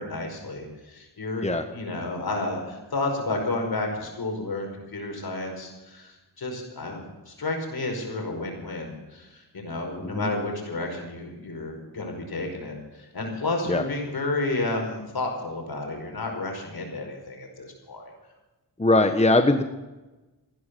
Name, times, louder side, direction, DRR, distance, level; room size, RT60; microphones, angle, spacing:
voice 1, 0.0-1.5 1.7-18.1, left 2 dB, 65° left, 3 dB, 5.2 m, -31 dB
voice 2, 18.8-19.6, left 2 dB, 15° left, 7 dB, 1.3 m, -21 dB
15.0 x 11.5 x 6.9 m, 1.1 s
cardioid pair, 55°, 39 cm